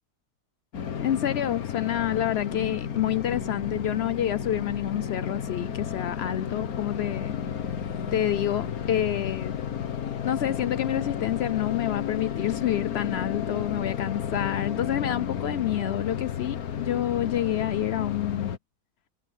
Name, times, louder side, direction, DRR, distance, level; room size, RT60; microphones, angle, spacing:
sound 1, 0.7-18.6, left 8 dB, 60° left, 1.6 m, -32 dB
voice 1, 1.0-7.4 8.1-9.5 10.2-18.5, left 11 dB, 85° left, 0.5 m, -28 dB
omnidirectional pair, 1.8 m